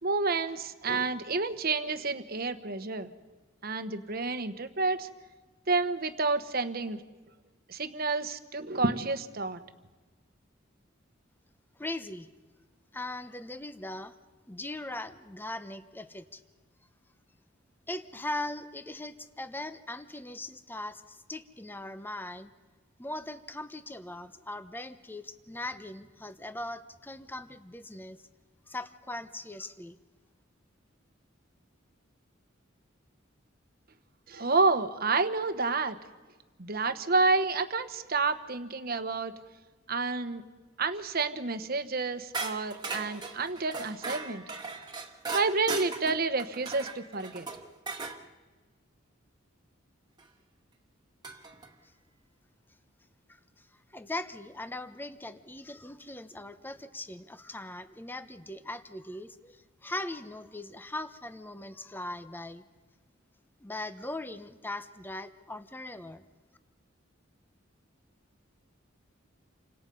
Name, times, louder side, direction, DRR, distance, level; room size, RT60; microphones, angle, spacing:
voice 1, 0.0-3.1 3.6-5.1 5.7-7.0 7.7-9.6 34.3-36.0 36.6-39.3 39.9-40.4 40.8-44.4 45.3-47.5, right 3 dB, 50° right, 10 dB, 1.2 m, -29 dB
voice 2, 11.8-12.3 12.9-14.1 14.5-16.4 17.9-22.5 23.0-28.2 28.7-30.0 53.6-53.7 53.9-62.6 63.6-66.2, left 2 dB, 10° left, 11 dB, 0.9 m, -40 dB
sound 1, 42.3-48.2 50.2-50.3 51.2-51.7, right 4 dB, 20° right, 1.8 m, -38 dB
29.0 x 25.5 x 5.5 m, 1.3 s
head